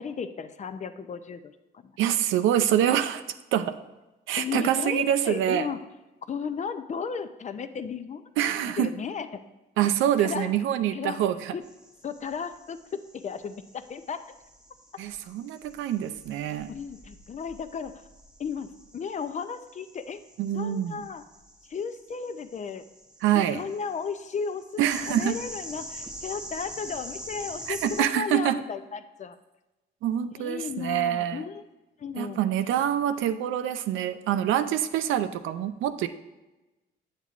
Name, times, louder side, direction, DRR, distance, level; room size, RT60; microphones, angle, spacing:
voice 1, 0.0-1.9 4.4-5.8 6.3-8.2 8.8-9.4 9.8-9.9 10.2-10.5 10.9-11.2 11.5-11.6 12.0-14.3 16.7-18.0 18.4-20.2 20.5-21.2 21.7-22.8 23.3-29.4 30.4-31.6 32.0-32.4, left 6 dB, 35° left, 11 dB, 0.5 m, -34 dB
voice 2, 2.0-3.2 3.5-3.7 4.3-5.7 8.4-8.9 9.8-11.5 15.0-16.7 20.4-21.0 23.2-23.6 24.8-25.4 27.7-28.6 30.0-31.4 32.2-36.1, right 10 dB, 85° right, 10 dB, 0.5 m, -25 dB
sound 1, 11.6-28.0, right 1 dB, 5° right, 0.7 m, -45 dB
8.1 x 7.4 x 2.4 m, 1.1 s
cardioid pair, 90°, 20 cm